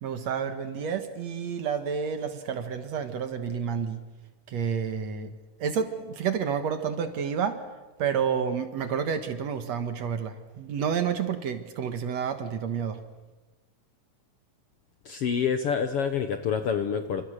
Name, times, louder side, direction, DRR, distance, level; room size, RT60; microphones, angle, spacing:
voice 1, 0.0-4.0 4.5-5.3 5.6-7.6 8.0-13.0, right 7 dB, 60° right, 8 dB, 2.4 m, -29 dB
voice 2, 15.0-17.2, left 7 dB, 60° left, 8 dB, 1.6 m, -27 dB
29.0 x 26.5 x 6.6 m, 1.2 s
omnidirectional pair, 3.8 m